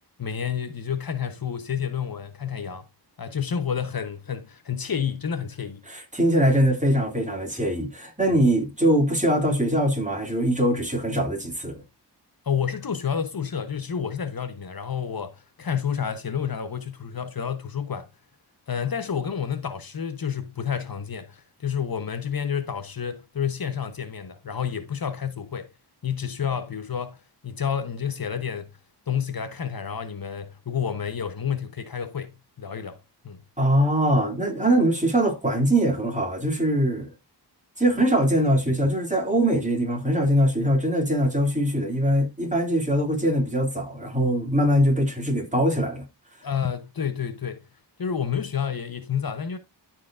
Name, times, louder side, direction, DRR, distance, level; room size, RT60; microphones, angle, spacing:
voice 1, 0.2-2.9 3.2-5.8 8.3-8.4 12.4-18.1 18.7-25.7 26.0-28.7 29.1-33.0 33.2-33.4 38.7-38.8 46.4-47.7 48.0-49.6, left 7 dB, 55° left, 0.8 m, -30 dB
voice 2, 5.9-11.8 33.6-37.1 37.8-46.0, right 1 dB, 15° right, 2.5 m, -22 dB
13.5 x 4.6 x 2.4 m
wide cardioid pair, 65°, 42 cm